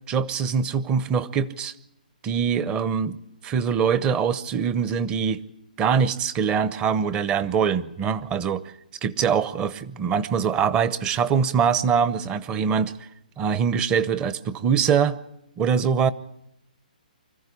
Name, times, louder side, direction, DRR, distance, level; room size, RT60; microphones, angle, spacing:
voice 1, 0.1-1.7 2.2-3.2 3.4-5.4 5.8-8.6 9.0-13.1 13.4-15.2 15.6-16.1, right 7 dB, 20° right, 17 dB, 0.8 m, -23 dB
25.0 x 15.0 x 9.8 m, 0.82 s
hypercardioid pair, 150°, 5 cm